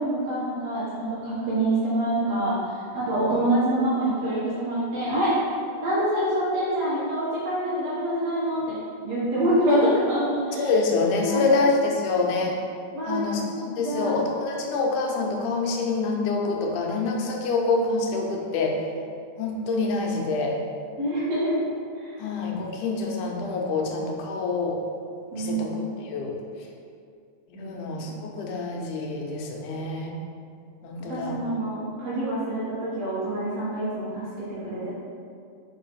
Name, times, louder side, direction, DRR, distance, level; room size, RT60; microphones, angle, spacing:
voice 1, 0.0-5.4 5.8-8.7 9.0-10.7 11.2-11.6 12.9-13.5 13.8-14.1 21.0-21.6 22.0-22.2 25.3-25.9 27.5-27.8 28.1-28.2 31.1-34.9, right 1 dB, 60° right, -9 dB, 2.5 m, -26 dB
voice 2, 10.6-12.6 13.1-18.8 19.4-20.6 22.2-24.8 25.3-26.3 27.5-30.1 30.8-31.4, left 3 dB, 85° left, 0 dB, 2.2 m, -26 dB
4.8 x 4.8 x 4.6 m, 2.3 s
omnidirectional pair, 3.5 m